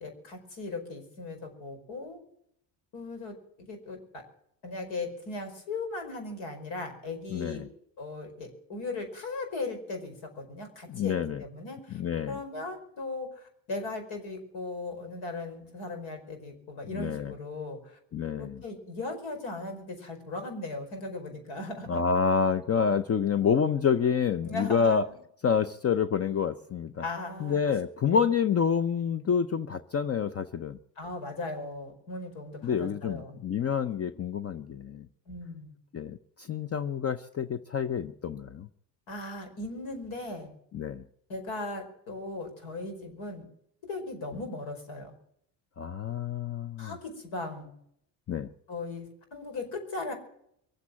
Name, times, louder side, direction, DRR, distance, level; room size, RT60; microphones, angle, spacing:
voice 1, 0.0-2.2 2.9-3.4 3.7-4.2 4.6-7.6 8.0-12.0 12.3-18.0 18.4-22.0 24.4-25.2 27.0-27.6 28.1-28.2 31.0-33.4 35.3-35.7 39.1-40.5 41.3-43.5 43.8-45.1 46.8-47.7 48.7-50.1, left 2 dB, 65° left, 6 dB, 5.1 m, -38 dB
voice 2, 7.3-7.7 10.9-11.4 11.9-12.4 16.9-17.3 18.1-18.6 21.9-25.1 25.4-27.0 27.4-30.8 32.6-35.1 35.9-38.7 40.7-41.0 45.8-47.0 48.3-48.5, left 6 dB, 30° left, 12 dB, 0.6 m, -28 dB
23.0 x 8.2 x 7.5 m, 0.72 s
supercardioid pair, 75°, 50 cm